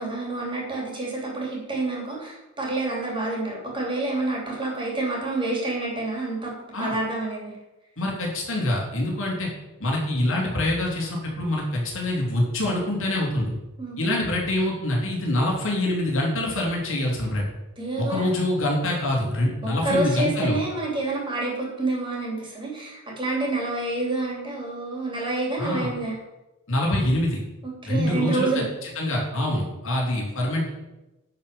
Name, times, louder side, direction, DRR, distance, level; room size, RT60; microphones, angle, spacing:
voice 1, 0.0-6.5 6.8-7.5 13.8-14.1 17.8-18.3 19.6-26.2 27.6-28.7, right 2 dB, 25° right, -2 dB, 3.2 m, -28 dB
voice 2, 8.0-9.5 9.8-13.5 14.0-17.4 18.0-20.6 25.6-25.9 26.7-27.4 27.8-28.6 28.9-30.7, left 1 dB, 60° left, -2 dB, 3.0 m, -25 dB
10.5 x 5.2 x 6.8 m, 1.0 s
head